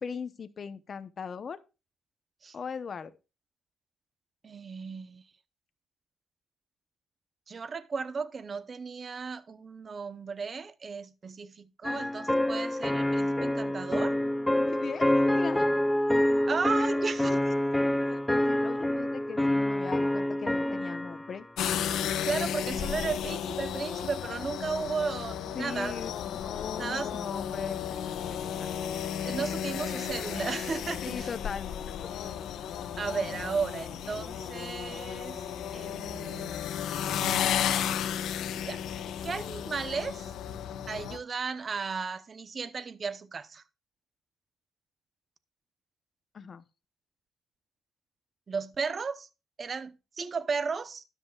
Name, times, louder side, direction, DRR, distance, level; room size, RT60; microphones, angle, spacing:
voice 1, 0.0-1.6 2.5-3.1 14.6-15.7 16.8-16.9 18.1-21.5 25.6-28.7 31.0-31.9 46.3-46.6, left 6 dB, 45° left, 0.8 m, -39 dB
voice 2, 4.4-5.2 7.5-14.2 16.5-17.4 22.2-26.1 26.8-27.2 29.2-31.3 33.0-35.4 35.7-36.6 38.7-38.8 39.2-40.3 40.9-43.6 48.5-49.3 49.6-51.0, right 5 dB, 40° right, 0.8 m, -34 dB
sound 1, 11.8-21.3, left 1 dB, 10° left, 0.4 m, -27 dB
sound 2, 21.6-41.2, left 9 dB, 80° left, 1.0 m, -33 dB
13.0 x 10.0 x 2.4 m
cardioid pair, 90°, 0 cm